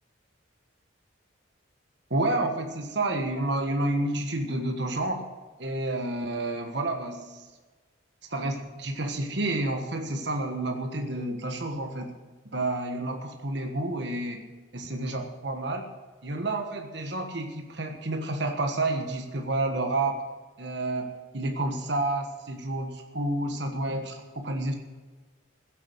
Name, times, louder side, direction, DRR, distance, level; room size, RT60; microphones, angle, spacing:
voice 1, 2.1-5.2 5.6-7.4 8.3-12.1 12.5-14.5 14.7-15.9 16.2-20.2 20.6-24.8, right 2 dB, 55° right, 4 dB, 1.4 m, -30 dB
15.5 x 8.3 x 6.6 m, 1.3 s
head